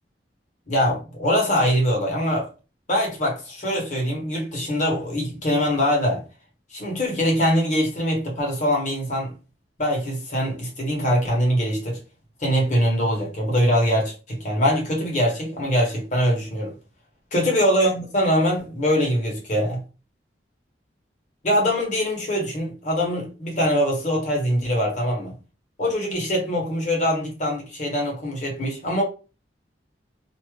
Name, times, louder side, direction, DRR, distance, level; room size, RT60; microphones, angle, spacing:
voice 1, 0.7-2.4 2.9-6.2 6.7-9.3 9.8-12.0 12.4-16.7 17.3-19.8 21.4-25.3 25.8-29.0, equal, 40° left, 1.2 m, -23 dB
2.7 x 2.4 x 3.1 m
head